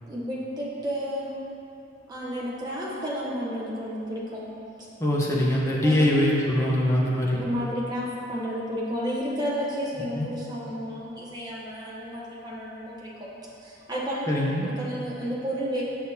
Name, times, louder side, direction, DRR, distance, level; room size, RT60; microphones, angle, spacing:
voice 1, 0.0-1.3 2.1-4.4 5.8-6.0 7.4-13.3 13.6-14.3 14.8-15.8, equal, 20° right, -6 dB, 1.1 m, -31 dB
voice 2, 5.0-7.4 10.1-10.3 14.3-14.6, left 1 dB, 15° left, -5 dB, 0.9 m, -23 dB
8.4 x 6.1 x 2.8 m, 2.7 s
head